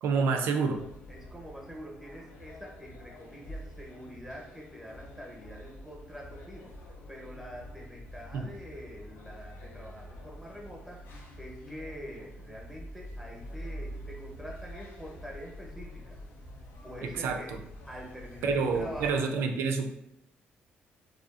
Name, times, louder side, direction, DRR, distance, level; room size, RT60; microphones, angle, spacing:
voice 1, 0.0-0.8 8.3-8.5 17.0-17.6 18.4-19.9, right 4 dB, 80° right, 5 dB, 0.3 m, -28 dB
sound 1, 0.7-19.2, equal, 80° left, 0.4 m, -46 dB
voice 2, 1.1-16.2 16.8-17.5 17.9-19.3, equal, ahead, -1 dB, 0.8 m, -45 dB
2.7 x 2.4 x 2.4 m, 0.81 s
supercardioid pair, 70°, 4 cm